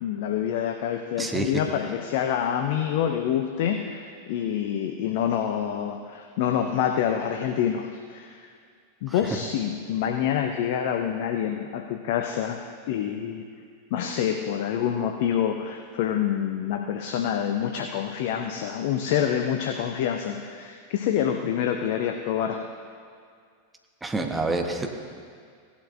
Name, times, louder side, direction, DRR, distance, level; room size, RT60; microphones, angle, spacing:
voice 1, 0.0-8.5 9.0-13.5 13.9-22.7, left 9 dB, 50° left, 5 dB, 0.6 m, -27 dB
voice 2, 1.2-1.5 9.1-9.2 24.0-25.0, right 2 dB, 10° right, 3 dB, 1.2 m, -28 dB
17.0 x 11.0 x 2.7 m, 2.1 s
figure-of-eight pair, 90°, 0 cm